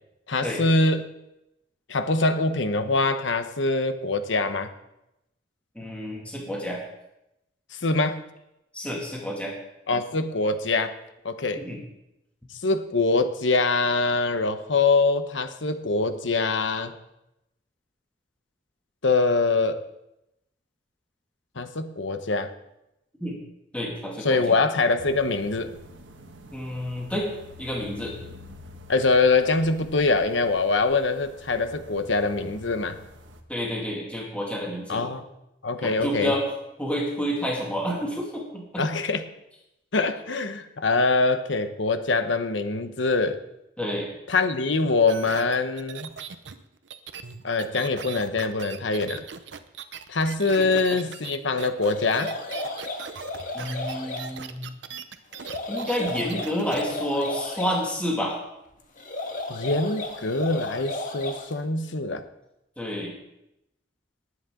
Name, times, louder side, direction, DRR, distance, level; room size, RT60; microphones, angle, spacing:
voice 1, 0.3-1.1 1.9-4.7 7.8-8.2 9.9-10.9 11.2-11.6 12.6-16.9 19.0-19.8 21.6-22.5 24.2-25.7 28.9-33.0 34.9-35.3 35.6-36.3 38.8-39.2 39.9-43.4 44.3-46.1 47.4-49.2 50.1-52.3 59.5-62.2, left 3 dB, 85° left, 9 dB, 1.1 m, -24 dB
voice 2, 5.8-6.8 8.7-9.5 11.6-11.8 23.2-23.4 23.7-24.6 26.5-27.3 27.6-28.2 33.5-35.0 35.8-36.4 36.8-38.9 43.8-44.1 50.6-50.7 53.5-54.7 55.7-58.4 62.8-63.1, equal, 5° left, -3 dB, 2.3 m, -29 dB
sound 1, 25.0-33.4, left 1 dB, 85° right, 1.4 m, -47 dB
sound 2, 45.1-56.9 57.2-57.3, right 6 dB, 70° right, 0.8 m, -40 dB
sound 3, 51.8-54.3 55.3-57.8 59.0-61.5, left 2 dB, 45° left, 1.8 m, -34 dB
19.0 x 9.6 x 3.8 m, 0.88 s
head